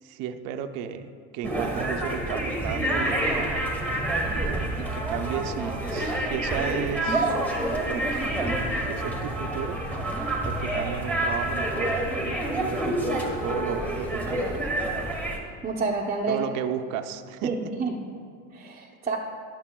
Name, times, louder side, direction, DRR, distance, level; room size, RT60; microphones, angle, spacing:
voice 1, 0.0-3.3 4.2-7.4 7.8-8.2 8.9-9.9 10.4-14.6 16.3-17.7, right 9 dB, 55° right, 7 dB, 0.6 m, -34 dB
sound 1, 1.4-15.4, right 1 dB, 5° left, 1.5 m, -28 dB
voice 2, 15.6-16.5 17.4-17.9 18.5-19.2, right 4 dB, 15° right, -3 dB, 0.8 m, -28 dB
13.5 x 11.0 x 2.3 m, 2.1 s
supercardioid pair, 125°, 38 cm